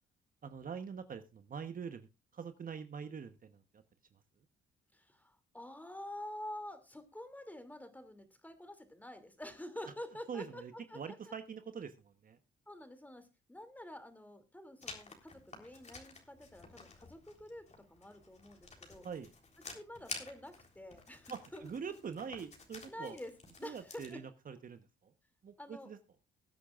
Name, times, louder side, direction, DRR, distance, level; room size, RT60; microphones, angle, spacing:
voice 1, 0.4-2.1 2.3-3.8 10.3-12.4 19.0-19.3 21.3-23.2 23.6-25.1 25.4-26.0, right 6 dB, 45° right, 9 dB, 1.1 m, -44 dB
voice 2, 4.9-10.6 10.9-11.3 12.7-19.1 19.7-21.7 22.9-23.3 23.6-24.2 25.6-25.9, left 1 dB, 10° left, 9 dB, 2.7 m, -48 dB
Writing, 14.8-24.1, left 3 dB, 35° left, 3.6 m, -51 dB
20.5 x 8.4 x 2.5 m, 0.26 s
cardioid pair, 90°, 20 cm